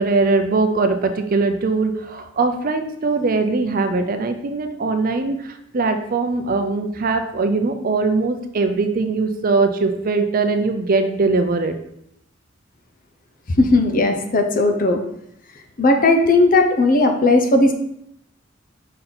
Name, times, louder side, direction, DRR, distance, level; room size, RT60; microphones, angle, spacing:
voice 1, 0.0-11.7, right 3 dB, 45° right, 7 dB, 0.5 m, -21 dB
voice 2, 13.6-15.0 15.8-17.7, left 2 dB, 45° left, 4 dB, 0.7 m, -16 dB
5.4 x 4.0 x 4.3 m, 0.75 s
head